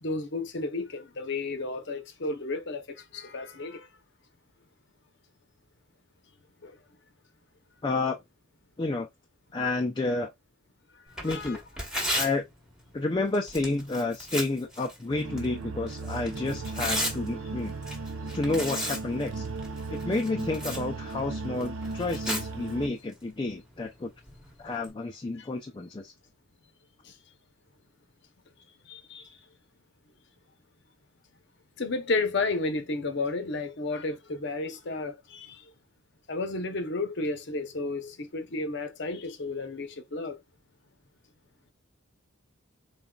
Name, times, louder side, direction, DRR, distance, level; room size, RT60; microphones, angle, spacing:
voice 1, 0.0-3.9 6.6-6.8 11.2-11.6 27.0-27.1 28.9-29.3 31.8-35.6 36.3-40.4, left 3 dB, 50° left, 0.7 m, -32 dB
voice 2, 7.8-8.2 8.8-9.1 9.5-10.3 11.2-11.6 12.2-12.4 12.9-17.7 18.3-19.5 19.9-24.1 24.6-26.1, left 2 dB, 20° left, 0.3 m, -30 dB
Tearing, 11.1-24.9, equal, 5° right, 1.0 m, -37 dB
sound 1, 15.1-22.9, right 3 dB, 70° right, 0.7 m, -36 dB
3.9 x 3.8 x 2.2 m
head